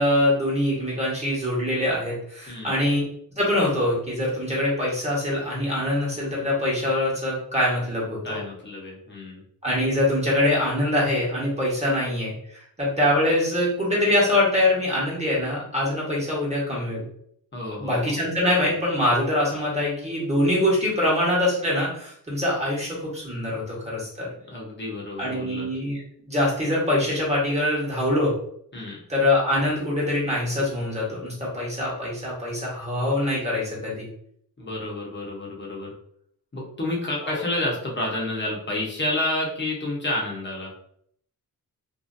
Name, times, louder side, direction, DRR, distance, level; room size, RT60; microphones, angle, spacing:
voice 1, 0.0-3.0 3.4-8.4 9.6-17.0 17.8-24.3 25.2-26.0 26.3-28.3 29.1-34.1 37.2-37.4, left 1 dB, 20° right, -6 dB, 1.3 m, -24 dB
voice 2, 2.5-2.8 8.2-9.4 17.5-18.2 24.5-25.7 28.7-29.0 34.6-35.9 36.5-40.7, left 1 dB, 35° left, -3 dB, 1.0 m, -30 dB
2.8 x 2.6 x 2.6 m, 0.67 s
wide cardioid pair, 105°, 33 cm